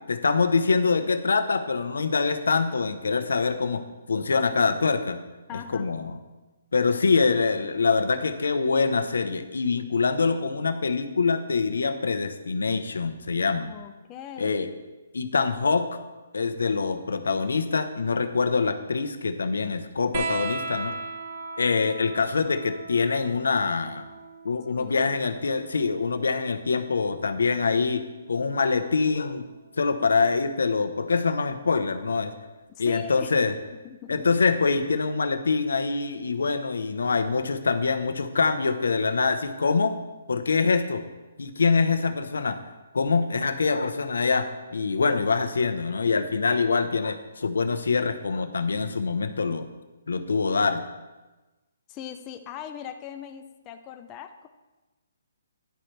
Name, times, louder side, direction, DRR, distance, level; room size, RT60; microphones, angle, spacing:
voice 1, 0.0-5.2 5.7-6.2 6.7-13.7 14.4-14.7 15.1-16.0 16.3-21.0 21.6-24.0 24.4-28.0 28.3-29.4 29.8-32.3 32.8-33.5 34.1-40.0 40.3-41.0 41.4-42.6 42.9-49.7 50.1-50.8, left 4 dB, 90° left, 9 dB, 0.9 m, -24 dB
voice 2, 5.5-5.9 13.6-14.7 24.7-25.1 32.7-33.3 33.8-34.3 51.9-54.5, left 10 dB, 20° left, 5 dB, 0.5 m, -40 dB
sound 1, 20.1-27.2 28.6-29.4 30.7-30.8, right 4 dB, 35° right, 0.9 m, -38 dB
10.5 x 10.0 x 3.3 m, 1.2 s
hypercardioid pair, 165°, 0 cm